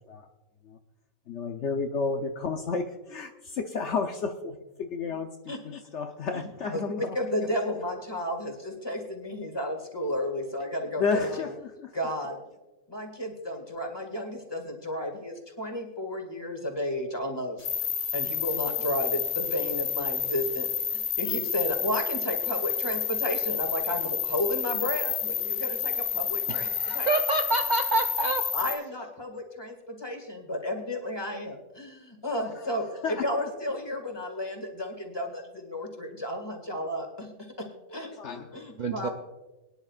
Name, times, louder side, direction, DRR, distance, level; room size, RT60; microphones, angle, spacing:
voice 1, 1.3-7.2 11.0-11.9 32.4-32.7 33.0-33.5 38.1-38.6, left 4 dB, 60° left, 5 dB, 1.0 m, -32 dB
voice 2, 7.1-11.5 11.9-12.4 12.9-17.7 18.1-20.7 20.9-26.7 26.9-27.1 28.5-37.3 37.9-38.1 38.5-39.1, left 1 dB, 20° left, 3 dB, 2.0 m, -32 dB
sound 1, 17.6-28.7, left 8 dB, 80° left, 2.6 m, -30 dB
voice 3, 26.5-28.4 38.8-39.1, right 2 dB, 45° right, 4 dB, 0.7 m, -27 dB
22.5 x 10.5 x 2.4 m, 1.1 s
omnidirectional pair, 1.4 m